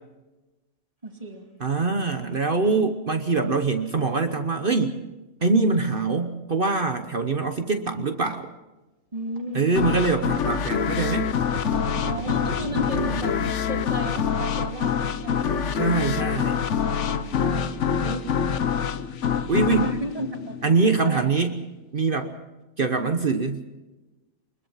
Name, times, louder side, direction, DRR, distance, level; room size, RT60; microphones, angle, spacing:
voice 1, 1.0-1.5 9.1-9.7 12.0-13.4 13.7-15.5 17.2-18.3 19.6-21.3, right 1 dB, 25° right, 3 dB, 2.7 m, -34 dB
voice 2, 1.6-5.0 5.4-8.5 9.5-11.3 15.7-16.7 19.5-19.9 20.6-21.6 21.9-22.3 22.8-23.6, right 4 dB, 45° right, 7 dB, 1.2 m, -23 dB
sound 1, 9.4-9.5 10.4-10.5 10.9-11.1 11.4-13.2 13.9-14.2, right 2 dB, 85° right, 2.8 m, -35 dB
sound 2, 9.7-21.2, left 7 dB, 65° left, 1.2 m, -26 dB
23.5 x 22.0 x 5.7 m, 1.1 s
omnidirectional pair, 1.3 m